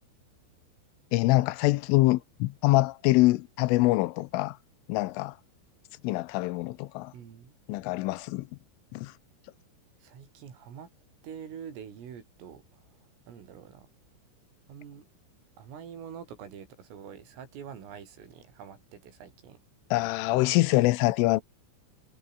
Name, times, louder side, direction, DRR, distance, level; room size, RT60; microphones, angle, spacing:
voice 1, 1.1-4.6 4.9-5.4 6.0-7.1 7.7-8.5 8.9-9.1 19.9-21.4, left 20 dB, 85° left, 3.3 m, -24 dB
voice 2, 7.1-7.5 10.0-10.9 11.2-13.9 14.7-15.1 15.6-19.6, right 8 dB, 85° right, 6.8 m, -46 dB
omnidirectional pair, 5.8 m